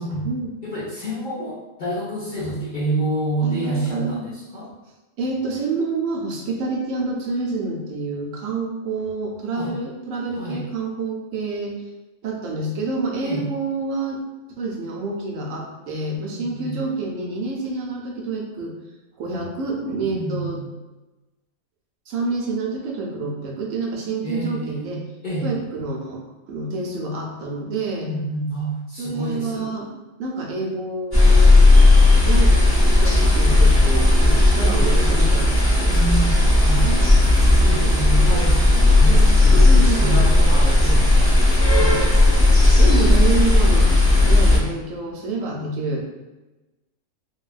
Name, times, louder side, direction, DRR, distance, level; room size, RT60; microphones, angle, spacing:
voice 1, 0.6-4.7 9.5-9.7 10.3-10.6 13.2-13.4 16.3-16.8 20.1-20.6 24.2-25.5 28.0-29.7 35.9-36.9 37.3-39.7 40.0-42.1 45.6-45.8, right 2 dB, 55° left, -8 dB, 0.5 m, -28 dB
voice 2, 3.4-4.2 5.2-11.8 12.2-14.2 14.6-18.7 19.2-20.6 22.1-25.0 25.4-26.2 26.5-28.1 29.0-29.9 30.2-31.6 32.2-32.5 32.8-36.0 36.8-37.4 39.5-40.4 42.8-43.9 44.2-46.0, right 3 dB, 75° right, 0 dB, 0.9 m, -28 dB
sound 1, 31.1-44.6, left 2 dB, 20° left, 0.7 m, -14 dB
3.2 x 2.2 x 2.3 m, 1.1 s
omnidirectional pair, 1.4 m